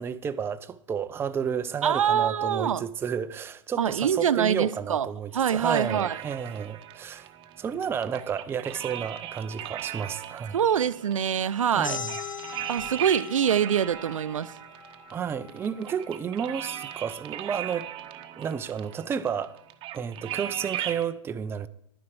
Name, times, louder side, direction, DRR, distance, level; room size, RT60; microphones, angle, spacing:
voice 1, 0.0-7.3 7.6-10.6 11.7-12.2 15.1-17.9 18.4-19.6 19.9-21.7, right 7 dB, 15° right, 0.5 m, -31 dB
voice 2, 1.8-2.8 3.8-5.1 5.3-6.2 10.5-12.0 12.7-14.5, right 8 dB, 80° right, 0.5 m, -24 dB
sound 1, 5.6-21.1, right 12 dB, 30° right, 0.9 m, -39 dB
sound 2, 11.8-17.0, left 5 dB, 80° left, 1.5 m, -41 dB
11.0 x 9.5 x 4.8 m
hypercardioid pair, 110°, 17 cm